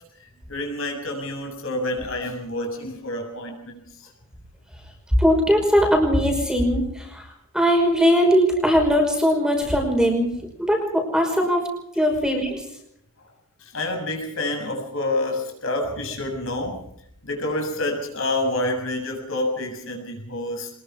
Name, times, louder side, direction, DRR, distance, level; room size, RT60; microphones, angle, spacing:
voice 1, 0.2-4.1 13.6-16.8 17.2-20.7, left 1 dB, 65° left, 2 dB, 7.2 m, -28 dB
voice 2, 5.2-7.3 7.5-10.3 10.6-11.7 12.0-12.6, equal, 5° right, 2 dB, 5.5 m, -20 dB
25.0 x 21.5 x 4.8 m, 0.74 s
head